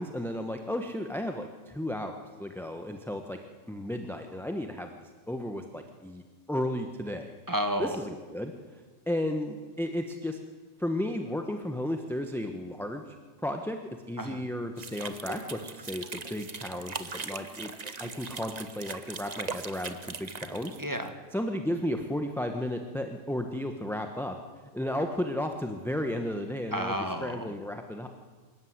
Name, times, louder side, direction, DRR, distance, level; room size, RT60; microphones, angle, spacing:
voice 1, 0.0-3.4 3.7-6.2 6.5-7.3 7.8-8.5 9.1-10.4 10.8-13.0 13.4-13.8 14.1-17.7 18.0-20.8 21.3-24.4 24.7-28.1, left 1 dB, ahead, 5 dB, 1.2 m, -33 dB
voice 2, 7.5-8.0 14.2-14.4 20.8-21.1 26.7-27.5, equal, 15° right, 6 dB, 1.8 m, -31 dB
sound 1, 14.8-21.1, right 4 dB, 35° right, 1.1 m, -40 dB
25.5 x 14.0 x 9.7 m, 1.4 s
omnidirectional pair, 1.4 m